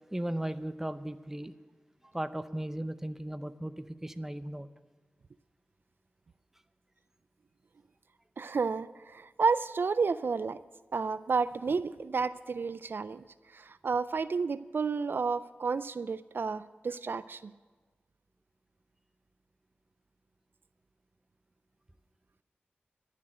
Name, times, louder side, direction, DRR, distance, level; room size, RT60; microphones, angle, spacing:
voice 1, 0.1-1.5 2.1-4.7, right 1 dB, 10° right, 11 dB, 0.6 m, -36 dB
voice 2, 8.4-10.6 10.9-13.2 13.5-17.5, right 4 dB, 70° right, 15 dB, 0.4 m, -31 dB
12.0 x 7.4 x 8.9 m, 1.4 s
wide cardioid pair, 60°, 4 cm